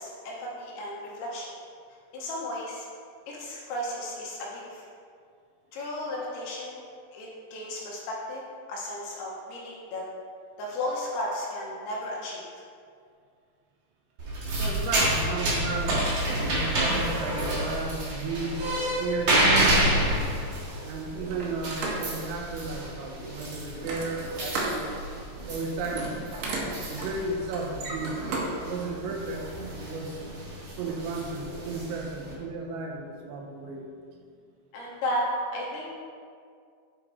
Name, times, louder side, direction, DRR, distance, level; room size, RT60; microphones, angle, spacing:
voice 1, 0.0-1.5 2.1-2.9 3.3-4.8 5.7-6.8 7.1-8.4 8.7-10.0 10.6-12.4 15.3-15.4 34.7-36.0, left 1 dB, 75° left, -3 dB, 2.7 m, -34 dB
sound 1, 14.2-32.3, right 1 dB, 55° right, 1.9 m, -29 dB
voice 2, 14.5-18.7 19.0-20.2 20.8-25.0 25.5-26.2 26.9-30.2 30.8-34.2, right 3 dB, 90° right, 1 dB, 3.2 m, -34 dB
sound 2, 15.7-16.7 17.8-18.0 19.2-19.3 19.6-20.6 21.3-22.3 23.7-24.8 25.2-25.5 25.7-28.5 28.9-29.0, right 2 dB, 70° right, 2.3 m, -34 dB
9.1 x 4.2 x 4.2 m, 2.2 s
omnidirectional pair, 5.2 m